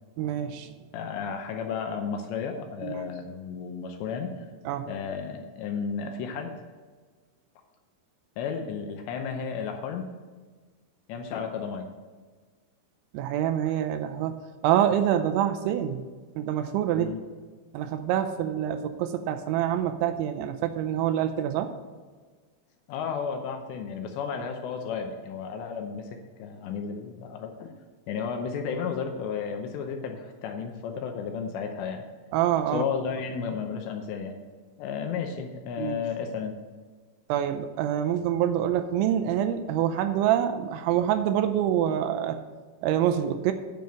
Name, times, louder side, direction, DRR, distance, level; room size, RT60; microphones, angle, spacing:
voice 1, 0.2-0.7 2.8-3.1 4.7-4.9 13.1-14.4 14.6-16.0 16.4-17.1 17.7-21.7 32.3-32.8 35.8-36.0 37.3-42.4 42.8-43.5, right 10 dB, 85° right, 7 dB, 2.9 m, -26 dB
voice 2, 0.9-4.5 4.9-6.5 8.4-10.1 11.1-11.9 16.9-17.2 22.9-27.7 28.1-32.0 32.7-34.4 34.8-36.5, left 6 dB, 80° left, 4 dB, 2.8 m, -33 dB
9.2 x 5.3 x 7.5 m, 1.4 s
omnidirectional pair, 5.5 m